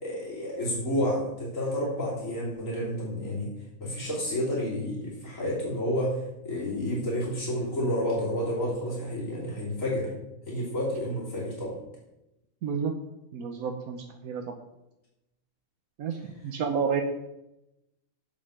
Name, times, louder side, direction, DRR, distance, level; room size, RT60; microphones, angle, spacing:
voice 1, 0.0-3.5 3.8-10.1 10.5-11.8, equal, 65° left, -5 dB, 3.7 m, -30 dB
voice 2, 12.6-12.9 13.3-14.5 16.0-17.0, right 6 dB, 85° right, 5 dB, 1.3 m, -30 dB
7.7 x 7.2 x 6.6 m, 0.91 s
omnidirectional pair, 1.4 m